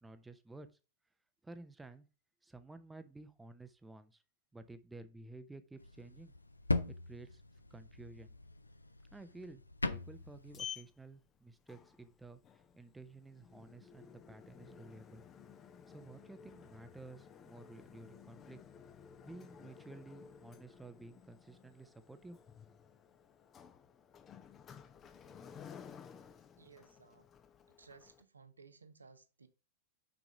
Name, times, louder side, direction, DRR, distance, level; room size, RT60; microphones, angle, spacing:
voice 1, 0.0-0.7 1.4-2.1 2.4-4.2 4.5-6.3 7.1-7.4 7.7-8.3 9.1-15.2 15.9-18.6 19.2-22.7, right 2 dB, 10° right, 0.8 m, -53 dB
sound 1, 5.8-10.7, left 2 dB, 80° left, 0.5 m, -40 dB
Sliding door, 9.9-28.2, left 8 dB, 25° left, 0.8 m, -54 dB
voice 2, 26.6-27.3 27.8-29.5, right 5 dB, 75° right, 1.0 m, -59 dB
6.0 x 5.2 x 4.9 m
figure-of-eight pair, 90°, 0 cm